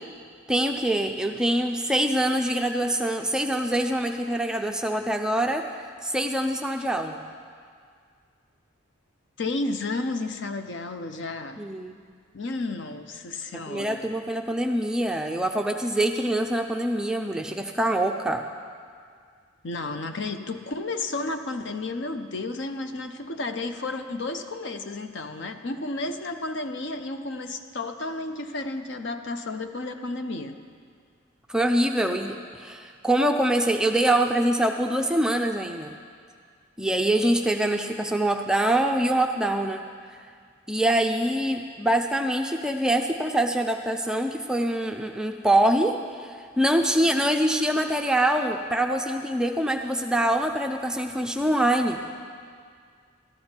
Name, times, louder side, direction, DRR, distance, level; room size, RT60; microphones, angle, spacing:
voice 1, 0.5-5.6 6.0-7.2 11.6-11.9 13.7-18.4 31.5-35.9 36.8-39.8 40.7-46.0 46.2-52.0, right 1 dB, 5° right, 3 dB, 0.4 m, -24 dB
voice 2, 9.4-11.6 12.3-14.1 19.6-30.6, left 2 dB, 60° left, 8 dB, 0.6 m, -32 dB
14.0 x 11.5 x 4.4 m, 2.1 s
head